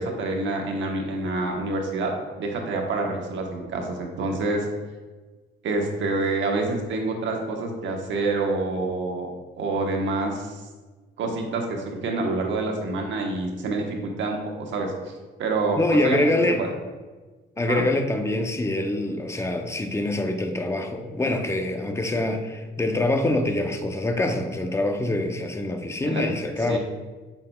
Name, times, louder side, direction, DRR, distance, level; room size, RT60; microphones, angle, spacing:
voice 1, 0.0-2.1 2.4-4.6 5.6-9.3 9.6-10.6 11.2-14.9 15.4-16.7 17.6-17.8 26.0-26.3 26.7-26.8, right 3 dB, 70° right, 2 dB, 1.2 m, -27 dB
voice 2, 15.8-16.7 17.6-26.8, left 2 dB, 15° left, 4 dB, 0.7 m, -25 dB
7.4 x 5.7 x 2.3 m, 1.3 s
cardioid pair, 90°, 20 cm